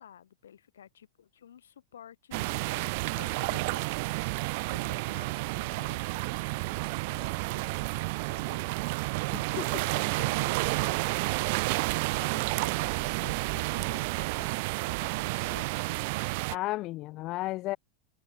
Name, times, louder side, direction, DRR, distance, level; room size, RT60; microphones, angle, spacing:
voice 1, 0.0-3.9 4.2-11.3 12.1-16.2, left 9 dB, 65° left, 3.9 m, -51 dB
sound 1, 2.3-16.6, right 27 dB, 50° right, 1.2 m, -30 dB
voice 2, 9.3-9.6 16.5-17.8, left 18 dB, 40° left, 0.9 m, -33 dB
figure-of-eight pair, 90°, 0 cm